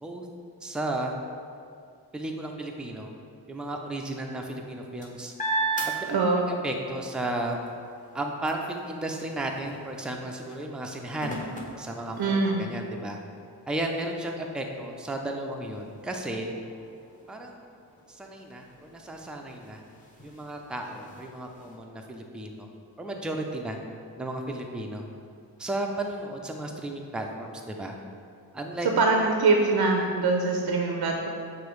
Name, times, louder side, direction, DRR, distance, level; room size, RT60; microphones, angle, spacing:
voice 1, 0.6-1.1 2.1-3.1 3.5-5.3 6.6-7.6 8.1-11.4 11.8-13.2 13.7-16.5 17.3-17.7 18.1-19.8 20.2-22.7 23.0-23.8 24.2-25.0 25.6-28.0 28.5-28.9, right 1 dB, ahead, 2 dB, 0.4 m, -34 dB
sound 1, 4.5-6.8 7.2-12.7 13.3-13.4 13.8-21.7, right 3 dB, 15° left, 0.8 m, -38 dB
voice 2, 6.1-6.4 12.2-12.6 29.0-31.3, right 3 dB, 60° right, 1 dB, 0.6 m, -23 dB
6.0 x 2.7 x 3.1 m, 2.4 s
cardioid pair, 50°, 46 cm